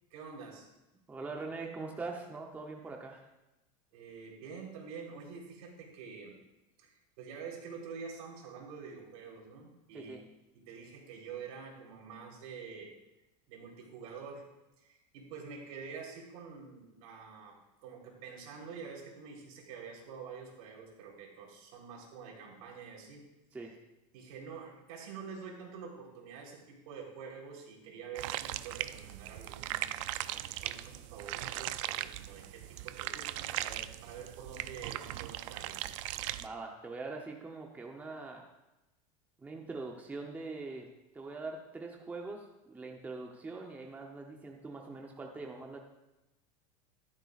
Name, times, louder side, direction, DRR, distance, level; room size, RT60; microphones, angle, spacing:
voice 1, 0.1-0.7 3.9-6.4 6.8-10.2 10.5-12.9 13.5-14.5 14.8-23.3 23.7-23.8 24.1-35.8, right 5 dB, 80° right, -2 dB, 3.9 m, -47 dB
voice 2, 1.1-3.2 9.9-10.2 23.5-23.7 36.4-38.5 39.4-40.9 41.1-45.8, right 3 dB, 10° right, 1 dB, 0.8 m, -42 dB
sound 1, 28.1-36.5, right 15 dB, 65° right, 0.5 m, -39 dB
14.5 x 12.5 x 2.5 m, 0.97 s
supercardioid pair, 170°, 17 cm